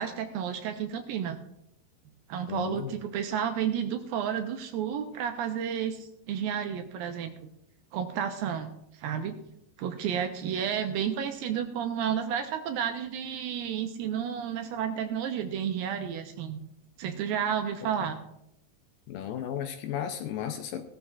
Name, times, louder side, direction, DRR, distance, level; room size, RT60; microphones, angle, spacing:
voice 1, 0.0-1.4 2.3-7.3 7.9-9.4 9.8-16.6 17.0-18.2, right 8 dB, 80° right, 7 dB, 2.3 m, -31 dB
voice 2, 2.5-3.0 19.1-20.8, left 9 dB, 80° left, 7 dB, 2.2 m, -34 dB
16.5 x 12.5 x 2.5 m, 0.79 s
omnidirectional pair, 4.6 m